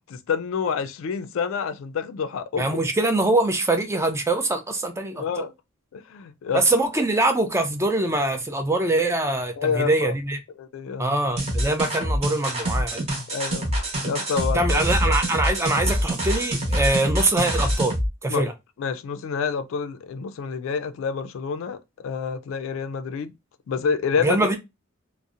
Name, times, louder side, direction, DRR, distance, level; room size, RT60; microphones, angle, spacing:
voice 1, 0.1-2.6 5.2-5.5 5.9-6.6 9.6-10.1 10.6-11.1 13.3-13.7 14.0-14.8 18.3-18.5 18.8-21.8 22.0-23.3 23.7-24.4, left 6 dB, 70° left, 0.3 m, -28 dB
voice 2, 2.6-5.5 6.5-10.4 11.0-13.0 14.5-18.0 18.2-18.5 24.2-24.6, right 2 dB, 15° right, 0.4 m, -23 dB
sound 1, 11.4-18.1, equal, 35° right, 0.9 m, -25 dB
2.7 x 2.0 x 2.4 m
head